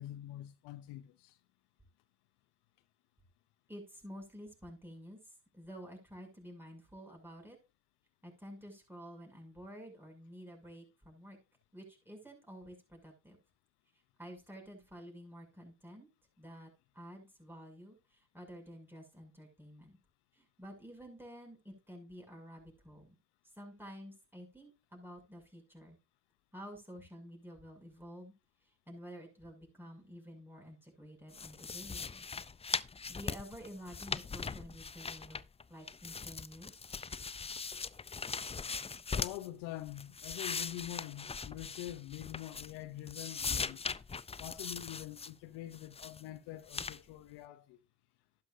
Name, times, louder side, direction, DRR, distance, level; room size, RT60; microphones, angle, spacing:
voice 1, 0.0-1.4 39.1-43.9 44.4-47.8, left 14 dB, 85° left, 0.7 m, -45 dB
voice 2, 3.7-5.2 5.5-7.6 8.2-11.4 11.7-13.4 14.2-16.1 16.4-20.0 20.3-23.2 23.6-26.0 26.5-28.3 28.9-32.3 33.1-35.4 35.7-36.7, equal, 5° right, 6.7 m, -50 dB
sound 1, 31.3-35.6 35.9-39.5 39.9-42.8 43.1-45.3 45.7-46.2 46.7-47.0, left 5 dB, 15° left, 0.4 m, -40 dB
11.5 x 9.8 x 2.6 m
hypercardioid pair, 45°, 41 cm